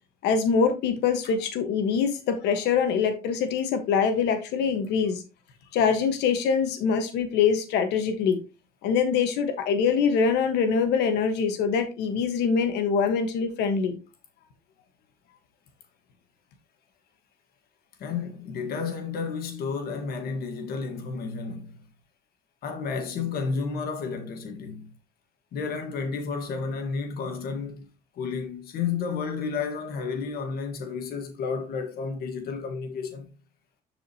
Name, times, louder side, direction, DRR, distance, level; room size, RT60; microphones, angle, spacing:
voice 1, 0.2-5.2 5.7-8.4 8.8-14.0, left 6 dB, 85° left, 1.3 m, -24 dB
voice 2, 18.0-21.8 22.6-24.9 25.5-27.9 28.1-33.3, left 5 dB, 65° left, 1.5 m, -31 dB
10.0 x 4.9 x 2.8 m
cardioid pair, 110°, 17 cm